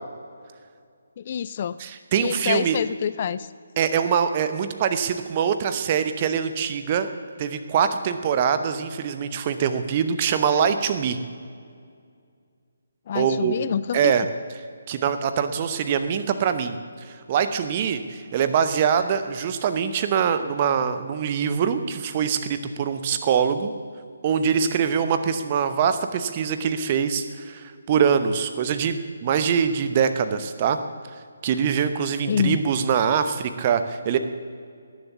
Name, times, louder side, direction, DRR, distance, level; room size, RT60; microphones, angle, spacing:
voice 1, 1.2-1.8 2.2-3.5 13.1-14.1 32.3-32.6, left 8 dB, 35° left, 16 dB, 0.3 m, -26 dB
voice 2, 1.8-2.8 3.8-7.1 7.4-11.2 13.1-13.5 13.9-14.2 14.9-16.8 17.1-23.7 24.2-30.8 31.4-34.2, right 7 dB, 30° right, 10 dB, 0.9 m, -23 dB
19.0 x 7.4 x 6.9 m, 2.2 s
figure-of-eight pair, 145°, 0 cm